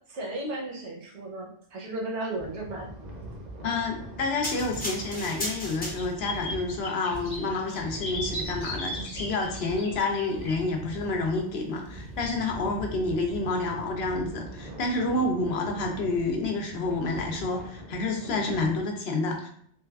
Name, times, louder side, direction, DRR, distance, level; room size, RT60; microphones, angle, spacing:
voice 1, 0.1-2.9 18.5-18.8, right 2 dB, 75° right, 0 dB, 1.1 m, -35 dB
sound 1, 2.4-18.8, right 1 dB, 45° right, 0.6 m, -41 dB
voice 2, 3.6-19.5, left 3 dB, 65° left, 2 dB, 0.8 m, -29 dB
sound 2, 4.4-6.4 7.0-7.2, equal, 10° left, 0.4 m, -35 dB
sound 3, 5.0-5.1 5.3-10.6 13.5-13.6, left 1 dB, 30° left, 0.8 m, -38 dB
3.1 x 2.3 x 2.3 m, 0.63 s
omnidirectional pair, 1.2 m